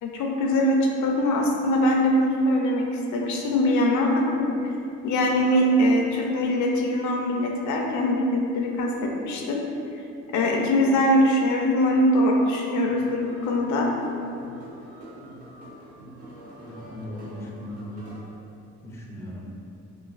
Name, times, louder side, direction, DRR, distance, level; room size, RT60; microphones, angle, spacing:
voice 1, 0.0-4.7 5.0-9.6 10.3-13.9, left 1 dB, 75° left, 0 dB, 0.5 m, -22 dB
sound 1, 12.7-18.2, right 1 dB, 70° right, 0.7 m, -44 dB
voice 2, 16.6-18.2 18.8-19.4, left 1 dB, 10° left, -2 dB, 0.3 m, -38 dB
3.1 x 2.2 x 2.4 m, 2.7 s
cardioid pair, 90°, 30 cm